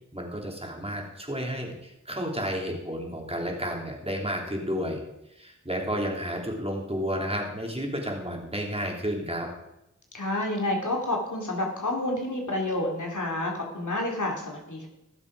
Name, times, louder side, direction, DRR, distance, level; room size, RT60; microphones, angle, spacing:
voice 1, 0.1-5.0 5.3-9.5, equal, 20° right, 0 dB, 3.3 m, -31 dB
voice 2, 10.1-14.9, left 1 dB, 70° left, 0 dB, 3.1 m, -29 dB
18.5 x 7.3 x 5.0 m, 0.88 s
wide cardioid pair, 45°, 31 cm